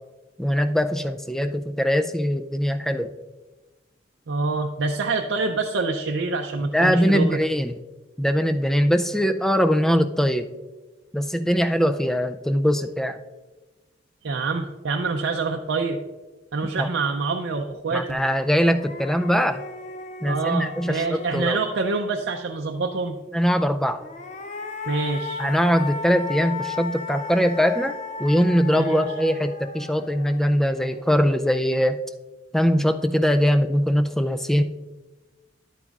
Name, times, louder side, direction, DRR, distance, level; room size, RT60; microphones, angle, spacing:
voice 1, 0.4-3.1 6.7-7.8 8.2-10.5 11.1-13.2 16.8-16.9 17.9-19.6 20.2-21.6 23.3-24.0 25.4-32.0 32.5-34.6, equal, ahead, 8 dB, 0.3 m, -22 dB
voice 2, 4.3-7.4 14.2-16.0 16.5-18.2 20.3-23.2 24.9-25.4 28.8-29.0, right 3 dB, 75° right, 2 dB, 0.5 m, -26 dB
sound 1, 18.1-18.2 18.5-22.2 23.9-31.1, left 5 dB, 40° left, 0.6 m, -36 dB
11.0 x 9.0 x 2.4 m, 1.2 s
head